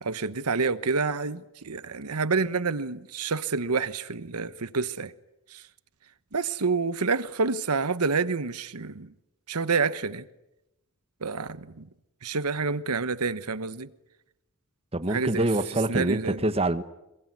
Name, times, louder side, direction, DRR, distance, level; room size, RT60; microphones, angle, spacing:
voice 1, 0.0-5.1 5.5-5.6 6.3-9.1 9.5-10.2 11.2-11.9 12.2-13.9 15.1-15.5 15.9-16.4, right 4 dB, 85° right, 1.1 m, -28 dB
voice 2, 14.9-16.8, right 2 dB, 25° right, 1.3 m, -25 dB
26.5 x 22.5 x 9.6 m
head